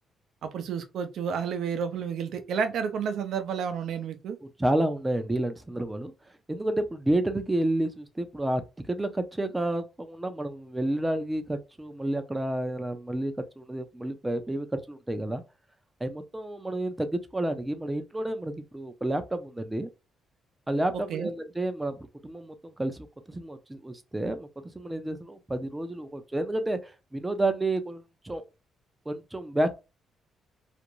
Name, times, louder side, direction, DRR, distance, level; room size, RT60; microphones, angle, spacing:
voice 1, 0.4-4.4 21.1-21.3, right 7 dB, 70° right, 0.5 m, -31 dB
voice 2, 4.6-6.1 6.5-8.6 8.9-15.4 16.0-19.9 20.7-24.5 24.7-28.4 29.1-29.7, right 1 dB, 15° right, 0.5 m, -30 dB
2.5 x 2.1 x 2.9 m
cardioid pair, 90°, 0 cm